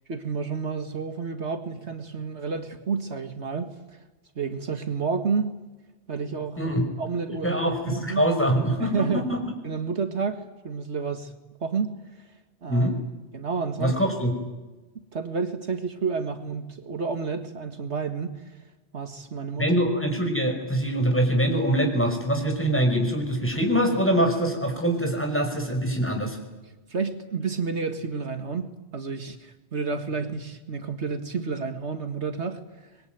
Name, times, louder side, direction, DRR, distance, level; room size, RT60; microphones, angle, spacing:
voice 1, 0.1-4.0 4.4-5.5 6.1-6.6 7.0-8.2 8.8-9.3 9.6-11.3 11.6-12.0 12.6-12.9 13.3-14.0 15.1-18.4 18.9-19.7 26.9-32.6, right 5 dB, 70° right, 7 dB, 2.1 m, -30 dB
voice 2, 7.4-9.4 12.7-12.9 13.8-14.3 19.6-26.4, equal, 10° left, 3 dB, 5.8 m, -24 dB
26.0 x 22.0 x 9.4 m, 1.1 s
omnidirectional pair, 1.2 m